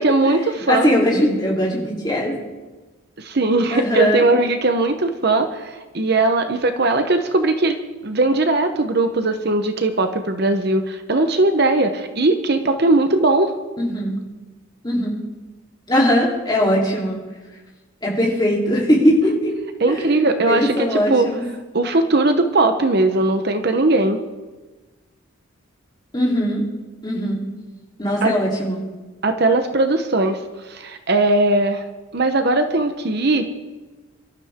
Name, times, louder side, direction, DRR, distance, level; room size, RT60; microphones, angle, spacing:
voice 1, 0.0-0.9 3.2-7.8 8.0-13.5 19.8-21.3 21.7-24.2 28.2-28.3 29.2-30.4 30.7-31.8 32.1-33.4, right 2 dB, 50° right, 7 dB, 0.9 m, -19 dB
voice 2, 0.7-2.3 3.7-4.3 13.8-14.2 14.8-15.2 15.9-17.2 18.0-19.5 19.9-20.1 20.5-21.4 26.1-26.6 27.0-27.4 28.0-28.8, equal, 20° left, -3 dB, 3.3 m, -20 dB
24.5 x 12.5 x 3.6 m, 1.2 s
head